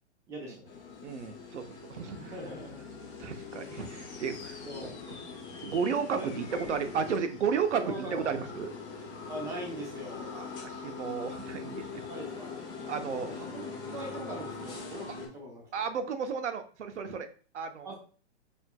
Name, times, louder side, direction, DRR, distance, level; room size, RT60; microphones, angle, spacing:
voice 1, 0.3-0.8 2.1-2.8 4.6-5.2 6.1-6.6 7.8-8.1 9.3-10.3 12.1-12.6 13.2-13.6 13.9-15.8 17.8-17.9, right 1 dB, 10° right, -1 dB, 0.7 m, -41 dB
sound 1, 0.7-15.3, left 4 dB, 10° left, 1.0 m, -43 dB
voice 2, 1.0-2.3 3.2-4.9 5.6-8.7 10.3-12.1 12.9-13.3 15.7-17.3 17.5-17.9, right 6 dB, 80° right, 8 dB, 0.8 m, -33 dB
sound 2, 3.8-15.1, left 4 dB, 80° left, 1.4 m, -50 dB
4.4 x 3.5 x 2.2 m, 0.41 s
hypercardioid pair, 155°, 35 cm